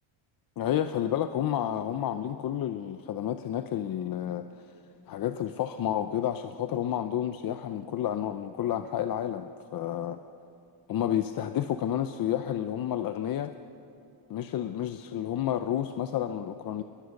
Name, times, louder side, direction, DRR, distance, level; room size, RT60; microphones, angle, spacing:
voice 1, 0.6-4.5 5.1-10.2 10.9-13.5 14.3-16.8, left 10 dB, 45° left, 9 dB, 0.7 m, -30 dB
29.5 x 21.5 x 6.5 m, 2.6 s
cardioid pair, 170°, 49 cm